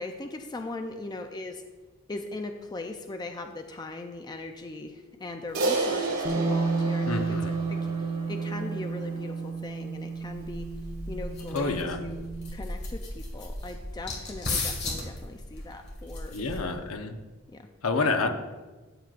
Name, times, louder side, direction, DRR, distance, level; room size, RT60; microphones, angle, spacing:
voice 1, 0.0-1.6 2.1-7.9 8.3-10.7 11.1-12.2 12.5-16.9 17.5-17.7, left 2 dB, 20° left, 5 dB, 0.4 m, -39 dB
Crash cymbal, 5.5-10.1, right 2 dB, 80° right, 1.6 m, -32 dB
Bass guitar, 6.2-12.5, right 4 dB, 25° right, 0.6 m, -32 dB
voice 2, 7.1-7.5 11.5-12.0 16.3-17.2 17.8-18.3, left 3 dB, 75° left, 5 dB, 0.9 m, -28 dB
sound 1, 10.2-16.9, left 2 dB, 50° left, 1.8 m, -36 dB
12.5 x 7.6 x 2.5 m, 1.2 s
head